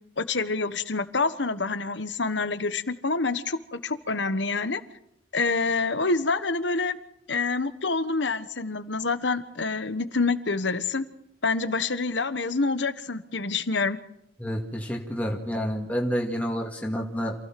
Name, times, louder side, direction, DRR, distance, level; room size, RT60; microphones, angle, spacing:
voice 1, 0.2-4.8 5.3-7.0 7.3-11.1 11.4-14.0, left 3 dB, 80° left, 12 dB, 1.4 m, -27 dB
voice 2, 14.4-17.3, equal, 10° left, -1 dB, 2.0 m, -29 dB
27.5 x 16.0 x 6.0 m, 0.77 s
head